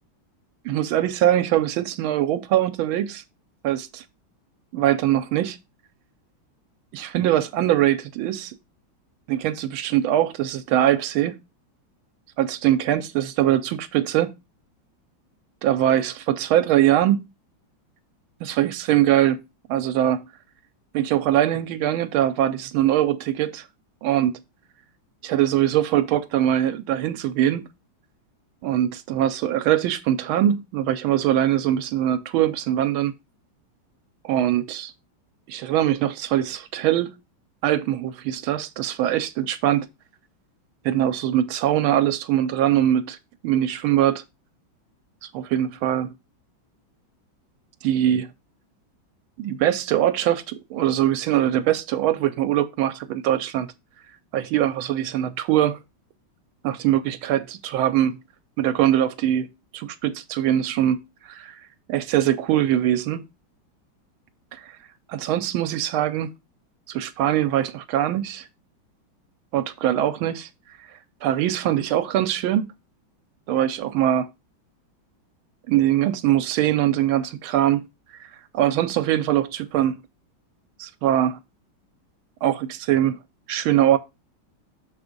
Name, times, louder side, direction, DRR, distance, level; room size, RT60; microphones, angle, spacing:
voice 1, 0.6-3.2 3.6-4.0 4.7-5.6 6.9-8.5 9.3-11.4 12.4-14.3 15.6-17.2 18.4-19.4 19.7-20.2 20.9-23.6 24.0-24.4 25.2-27.7 28.6-33.1 34.2-34.9 35.5-37.1 37.6-39.9 40.8-43.2 43.4-44.2 45.2-46.1 47.8-48.3 49.4-53.7 54.3-55.8 56.6-58.2 58.6-59.5 59.7-61.0 61.2-61.6 61.9-63.2 64.5-64.7 65.1-66.3 66.9-68.5 69.5-70.5 71.2-72.7 73.5-74.3 75.7-77.9 78.1-78.3 78.5-80.0 80.8-81.4 82.4-83.2 83.5-84.0, right 12 dB, 85° right, 1.4 m, -22 dB
6.6 x 3.4 x 5.1 m
omnidirectional pair, 2.2 m